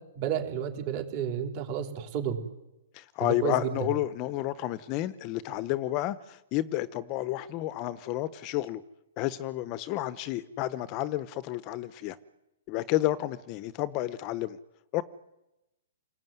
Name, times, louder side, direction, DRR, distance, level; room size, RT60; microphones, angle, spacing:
voice 1, 0.1-2.4 3.2-3.7, right 9 dB, 35° right, 4 dB, 4.6 m, -31 dB
voice 2, 2.9-8.8 9.2-12.2 12.7-14.6 14.9-15.0, left 15 dB, 30° left, 16 dB, 0.9 m, -31 dB
29.5 x 20.0 x 9.5 m, 0.94 s
hypercardioid pair, 155°, 0 cm